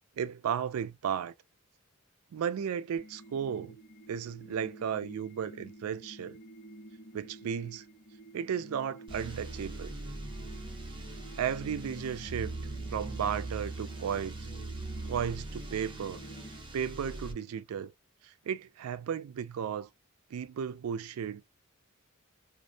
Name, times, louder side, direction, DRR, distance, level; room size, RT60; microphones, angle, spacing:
voice 1, 0.2-1.3 2.3-3.8 4.1-6.4 7.1-7.8 8.3-9.9 11.4-12.6 12.9-14.4 15.1-16.2 16.7-17.9 18.2-19.9 20.3-21.4, right 8 dB, 90° right, 0.4 m, -34 dB
sound 1, 3.0-16.6, right 1 dB, 55° left, 0.9 m, -50 dB
sound 2, 9.1-17.3, right 2 dB, 25° right, 0.7 m, -41 dB
2.5 x 2.0 x 2.6 m
head